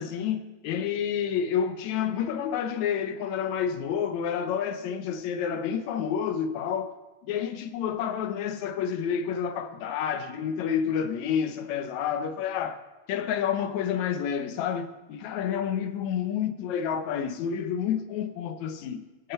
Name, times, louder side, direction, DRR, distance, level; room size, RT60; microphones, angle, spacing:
voice 1, 0.0-7.0 7.3-12.8 13.1-19.3, left 8 dB, 70° left, 2.0 m, -29 dB
23.0 x 8.1 x 4.4 m
omnidirectional pair, 3.6 m